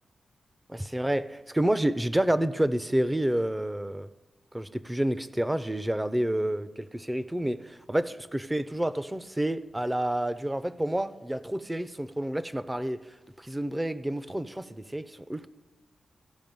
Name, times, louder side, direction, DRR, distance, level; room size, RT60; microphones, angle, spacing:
voice 1, 0.7-4.1 4.5-13.0 13.4-15.5, right 1 dB, 15° right, 14 dB, 0.5 m, -29 dB
15.5 x 5.5 x 5.3 m, 1.2 s
cardioid pair, 65°, 0 cm